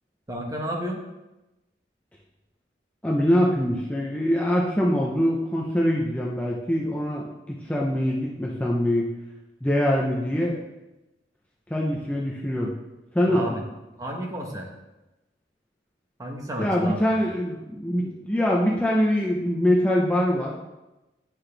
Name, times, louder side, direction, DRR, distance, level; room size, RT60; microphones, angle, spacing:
voice 1, 0.3-1.0 13.3-13.6 14.0-14.7 16.2-17.0, equal, 20° right, 0 dB, 1.1 m, -31 dB
voice 2, 3.0-9.0 9.6-10.6 11.7-12.7 13.1-13.6 16.6-20.5, equal, 10° left, -3 dB, 0.7 m, -23 dB
10.0 x 5.9 x 3.4 m, 1.0 s
head